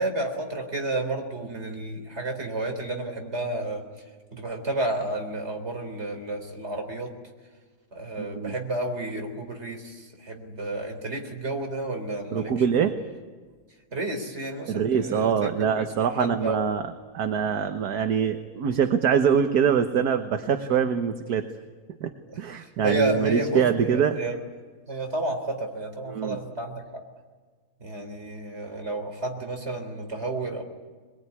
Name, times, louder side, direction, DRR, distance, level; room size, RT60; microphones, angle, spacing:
voice 1, 0.0-3.8 4.3-7.1 7.9-12.9 13.9-16.6 22.3-24.4 24.9-27.0 27.8-30.6, right 2 dB, 30° right, 3 dB, 3.9 m, -31 dB
voice 2, 8.2-8.5 12.3-12.9 14.7-16.8 17.1-21.4 22.0-24.2 26.1-26.4, right 7 dB, 55° right, 7 dB, 1.5 m, -24 dB
23.0 x 22.0 x 9.7 m, 1.5 s
omnidirectional pair, 2.3 m